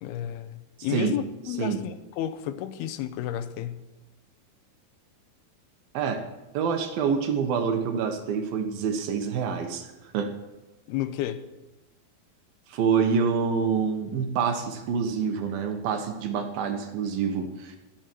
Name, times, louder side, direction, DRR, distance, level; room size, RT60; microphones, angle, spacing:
voice 1, 0.0-3.8 10.9-11.4, left 11 dB, 90° left, 2.8 m, -32 dB
voice 2, 6.5-10.3 12.7-17.8, right 6 dB, 70° right, 2.9 m, -27 dB
18.0 x 13.0 x 4.6 m
omnidirectional pair, 4.5 m